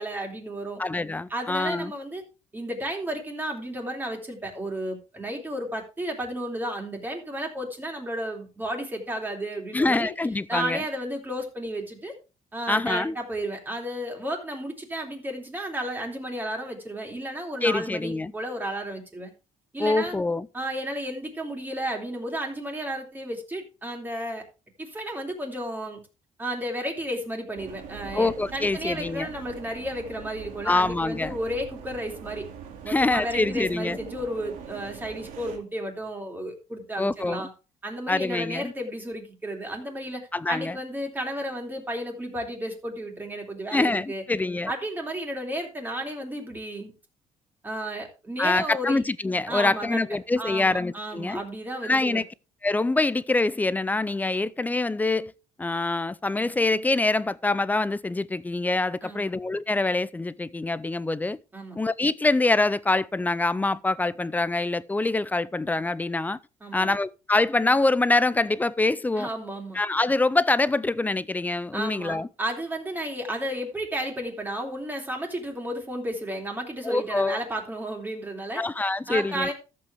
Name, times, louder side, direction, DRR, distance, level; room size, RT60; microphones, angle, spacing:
voice 1, 0.0-0.8 1.3-2.2 2.5-10.1 10.5-12.1 12.5-19.3 19.7-20.1 20.5-24.4 24.8-26.0 26.4-32.4 32.8-37.5 37.8-44.2 44.7-46.9 47.6-49.0 49.5-50.0 50.4-52.2 59.0-59.3 61.5-61.7 66.6-67.0 69.2-69.8 71.7-79.5, right 1 dB, 15° right, 2.9 m, -33 dB
voice 2, 0.8-1.9 9.7-10.8 12.7-13.1 17.6-18.3 19.8-20.5 28.1-29.3 30.6-31.4 32.9-34.0 37.0-37.5 38.1-38.7 40.3-40.8 43.7-44.7 48.4-51.4 51.8-52.2 52.6-55.3 55.6-61.4 61.7-66.4 66.7-69.3 69.7-72.3 76.8-77.4 78.6-79.5, left 2 dB, 10° left, 0.4 m, -25 dB
sound 1, 27.6-35.6, right 7 dB, 85° right, 2.3 m, -42 dB
14.0 x 7.7 x 3.4 m
cardioid pair, 135°, 14 cm